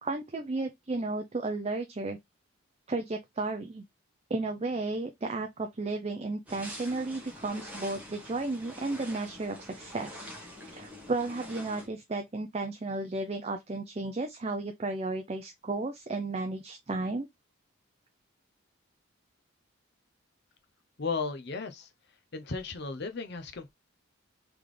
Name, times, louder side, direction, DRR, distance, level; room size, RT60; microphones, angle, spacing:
voice 1, 0.0-2.2 2.9-3.8 4.3-10.3 10.7-17.3, right 2 dB, 30° right, 0.5 m, -33 dB
sound 1, 6.5-11.9, equal, 5° right, 1.2 m, -45 dB
voice 2, 21.0-21.9 22.3-23.7, left 4 dB, 50° left, 0.6 m, -35 dB
3.9 x 3.4 x 3.1 m
head